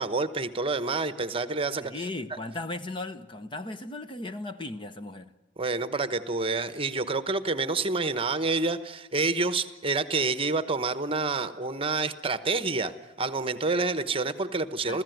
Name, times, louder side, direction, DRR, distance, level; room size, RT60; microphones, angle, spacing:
voice 1, 0.0-1.9 5.6-12.9 13.2-15.0, right 3 dB, 30° right, 1.1 m, -28 dB
voice 2, 1.8-5.3 14.9-15.0, left 2 dB, 25° left, 0.9 m, -36 dB
29.0 x 15.5 x 9.3 m
head